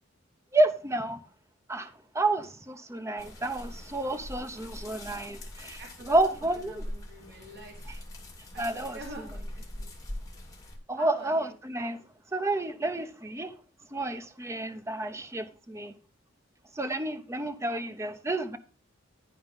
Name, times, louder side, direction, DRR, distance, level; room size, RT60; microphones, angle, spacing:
voice 1, 0.5-1.2 1.7-6.8 8.6-9.0 10.9-12.0 12.3-13.5 13.9-15.9 16.8-18.6, right 2 dB, 15° right, 0.7 m, -30 dB
sound 1, 3.2-10.8, left 1 dB, 15° left, 2.2 m, -42 dB
voice 2, 5.8-6.3 6.7-8.0 8.7-9.9 11.0-11.5, right 1 dB, 55° right, 2.0 m, -46 dB
10.5 x 4.7 x 5.3 m
head